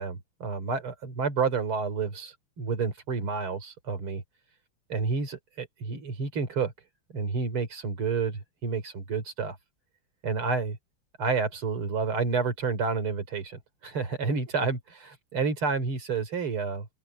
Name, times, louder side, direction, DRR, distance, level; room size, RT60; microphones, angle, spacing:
voice 1, 0.0-4.2 4.9-6.7 7.1-9.6 10.2-10.8 11.2-16.9, right 4 dB, 75° right, 4.1 m, -30 dB
open air
omnidirectional pair, 2.4 m